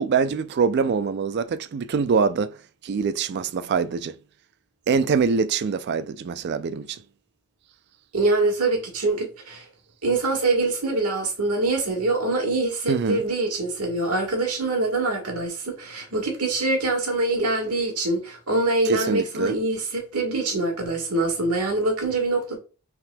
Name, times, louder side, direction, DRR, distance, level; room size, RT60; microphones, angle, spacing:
voice 1, 0.0-2.5 2.8-4.1 4.9-7.0 12.9-13.2 18.9-19.6, right 5 dB, 50° right, 0.3 m, -24 dB
voice 2, 8.1-9.6 10.0-22.6, right 2 dB, 85° right, 1.5 m, -24 dB
5.6 x 3.6 x 2.2 m
head